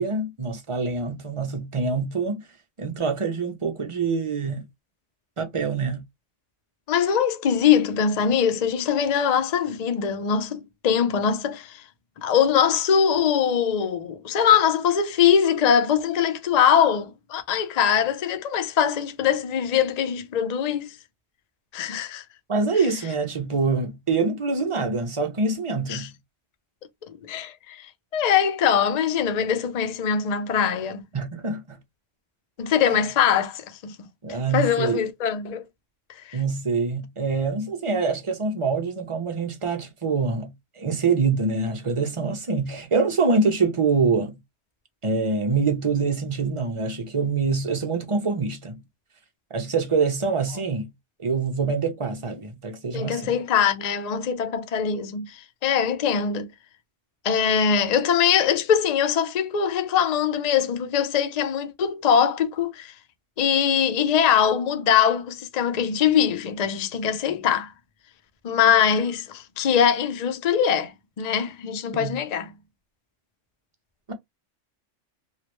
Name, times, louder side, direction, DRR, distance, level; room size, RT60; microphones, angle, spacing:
voice 1, 0.0-2.4 2.8-4.6 5.4-6.0 22.5-26.1 31.1-31.8 32.8-33.0 34.2-35.0 36.3-44.4 45.0-48.8 49.5-50.9 51.2-53.4 71.9-72.2 74.1-74.2, right 4 dB, 35° right, 0.6 m, -25 dB
voice 2, 6.9-11.8 12.2-21.0 21.7-22.2 25.9-26.1 27.1-31.0 32.6-34.0 34.5-35.6 36.2-36.4 52.9-56.5 57.2-62.9 63.4-67.7 68.4-72.5, left 8 dB, 45° left, 0.6 m, -22 dB
3.2 x 2.4 x 3.0 m
omnidirectional pair, 1.3 m